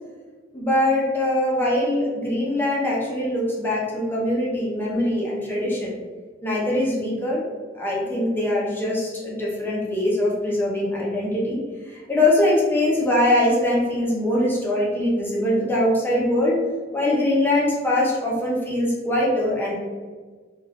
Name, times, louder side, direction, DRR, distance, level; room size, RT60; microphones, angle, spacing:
voice 1, 0.5-5.9 6.4-7.4 7.8-11.6 11.9-16.6 16.9-19.8, left 1 dB, 10° left, -5 dB, 0.6 m, -22 dB
3.4 x 2.4 x 2.3 m, 1.4 s
head